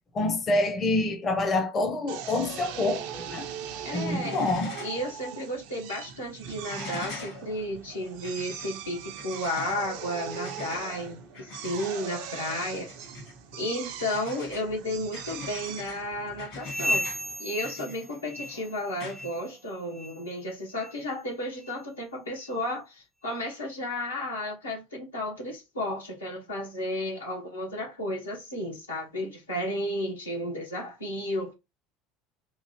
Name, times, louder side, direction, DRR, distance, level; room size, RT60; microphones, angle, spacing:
voice 1, 0.1-3.5 3.9-4.7, left 2 dB, 35° left, 0.8 m, -27 dB
Drill, 2.1-17.4, right 8 dB, 65° right, 0.6 m, -40 dB
sound 1, 3.6-3.9 4.1-5.1 5.4-5.5 6.7-20.1 21.5-21.6, left 5 dB, 65° left, 1.7 m, -44 dB
voice 2, 3.8-4.5 4.8-12.9 13.5-17.0 17.4-31.5, left 1 dB, 90° left, 1.4 m, -33 dB
sound 2, 16.6-18.8 19.1-19.5 19.9-20.2 20.8-20.9 21.6-21.7 22.5-22.6, equal, 5° right, 0.4 m, -33 dB
3.6 x 2.5 x 3.0 m
hypercardioid pair, 70°, 0 cm